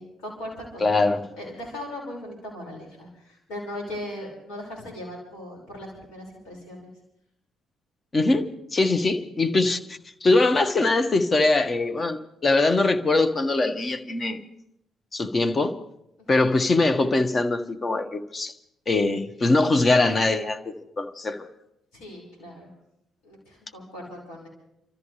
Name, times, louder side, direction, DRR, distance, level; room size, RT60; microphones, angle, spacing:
voice 1, 0.0-6.9 16.3-16.4 21.9-22.7 23.2-24.5, left 1 dB, 75° left, 5.6 m, -39 dB
voice 2, 0.8-1.2 8.1-14.4 15.1-15.8 16.3-18.5 18.9-21.5, left 2 dB, 35° left, 1.6 m, -22 dB
30.0 x 13.5 x 3.4 m
hypercardioid pair, 45°, 0 cm